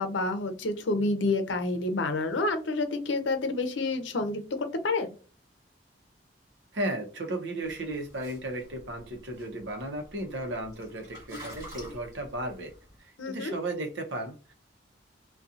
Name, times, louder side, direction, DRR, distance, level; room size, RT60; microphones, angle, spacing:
voice 1, 0.0-5.1 13.2-13.5, left 2 dB, 85° left, 0.6 m, -29 dB
voice 2, 6.7-12.7 13.0-14.5, right 1 dB, 75° right, 0.7 m, -35 dB
sound 1, 7.6-13.0, equal, 20° right, 1.3 m, -48 dB
2.7 x 2.3 x 2.4 m
head